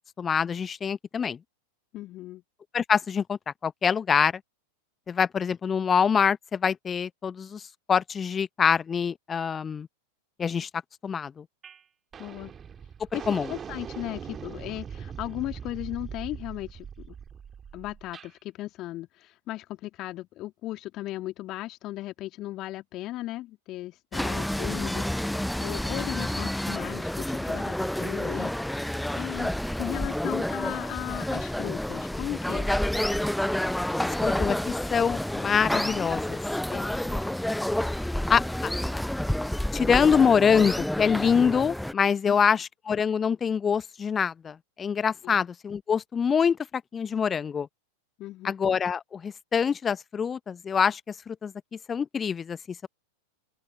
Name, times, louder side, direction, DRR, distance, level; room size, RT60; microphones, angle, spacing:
voice 1, 0.2-1.4 2.7-4.3 5.1-7.6 7.9-9.9 10.4-10.7 11.0-11.4 13.3-13.5 34.2-36.4 36.7-37.3 38.3-38.7 39.7-46.6 46.9-47.7 48.4-51.5 51.9-52.9, left 6 dB, 20° left, 1.0 m, -25 dB
voice 2, 1.9-2.4 12.2-12.5 13.1-17.1 17.7-28.5 28.8-32.7 42.3-42.4 45.2-45.4 48.2-48.5, left 16 dB, 35° left, 2.3 m, -37 dB
sound 1, 11.6-11.8 12.1-18.3, right 7 dB, 20° right, 3.1 m, -41 dB
sound 2, 24.1-41.9, left 1 dB, ahead, 0.3 m, -29 dB
open air
figure-of-eight pair, 90°, 0 cm